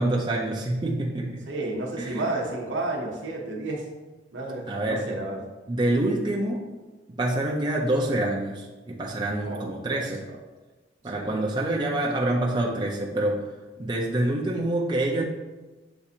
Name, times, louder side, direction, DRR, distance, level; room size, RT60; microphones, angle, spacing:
voice 1, 0.0-1.5 2.0-2.3 4.7-5.1 5.7-6.7 7.1-10.3 11.0-13.4 13.8-15.2, right 1 dB, 25° right, -3 dB, 0.4 m, -26 dB
voice 2, 1.5-3.8 4.3-5.4 9.4-10.0 11.0-11.4, right 2 dB, 75° right, 0 dB, 0.8 m, -32 dB
6.9 x 2.4 x 2.7 m, 1.2 s
head